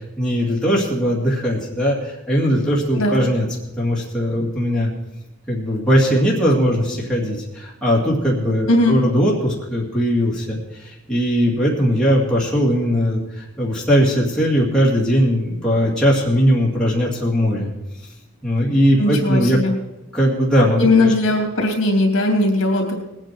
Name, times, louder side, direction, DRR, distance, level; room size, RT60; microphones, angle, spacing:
voice 1, 0.2-3.5 3.8-4.9 5.5-17.7 18.4-19.6 20.1-21.1, equal, 5° left, -5 dB, 2.2 m, -19 dB
voice 2, 19.0-19.7 20.8-23.0, left 2 dB, 60° left, 2 dB, 2.9 m, -18 dB
19.5 x 8.9 x 4.5 m, 0.99 s
head